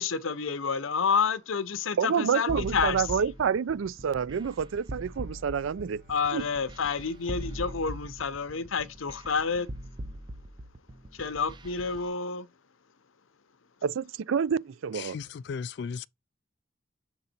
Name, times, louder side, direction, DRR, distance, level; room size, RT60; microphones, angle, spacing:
voice 1, 0.0-3.0 6.1-9.7 11.2-12.5, left 5 dB, 85° left, 0.7 m, -29 dB
voice 2, 2.0-6.0 6.3-6.4 13.8-15.2, right 7 dB, 80° right, 0.4 m, -28 dB
sound 1, 2.5-12.0, right 1 dB, 20° right, 0.5 m, -41 dB
Bowed string instrument, 5.0-9.1, left 2 dB, 45° right, 4.0 m, -62 dB
voice 3, 14.9-16.1, left 6 dB, 55° left, 0.3 m, -36 dB
6.8 x 3.9 x 4.3 m
head